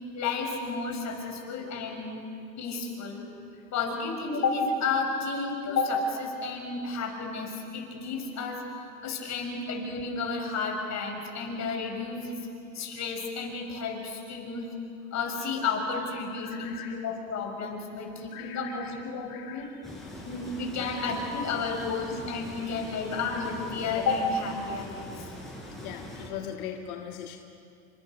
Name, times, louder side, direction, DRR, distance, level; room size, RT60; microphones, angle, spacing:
voice 1, 0.1-2.2 2.6-3.2 3.7-12.4 12.7-14.7 15.1-19.7 20.2-25.3, left 4 dB, 40° left, 2 dB, 6.9 m, -32 dB
voice 2, 16.4-17.0 18.3-19.0 19.3-20.0 20.8-21.0 22.7-22.8 23.1-23.2 25.8-27.4, left 9 dB, 85° left, 2 dB, 1.8 m, -41 dB
sound 1, 19.8-26.3, left 1 dB, ahead, 7.7 m, -42 dB
29.0 x 26.5 x 6.7 m, 2.6 s
supercardioid pair, 105°, 42 cm